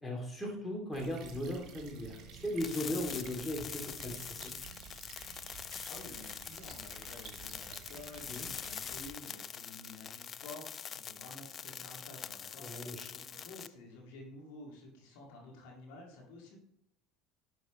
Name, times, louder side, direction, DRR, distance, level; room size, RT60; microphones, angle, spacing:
voice 1, 0.0-4.5 8.3-8.5 12.6-13.1, left 1 dB, 15° left, 0 dB, 2.6 m, -38 dB
sound 1, 0.9-9.1, right 7 dB, 50° right, 1.9 m, -51 dB
sound 2, 2.6-13.7, left 8 dB, 35° left, 0.3 m, -44 dB
voice 2, 5.9-16.6, left 2 dB, 65° left, -2 dB, 2.2 m, -51 dB
10.5 x 6.3 x 3.1 m, 0.76 s
hypercardioid pair, 70°, 0 cm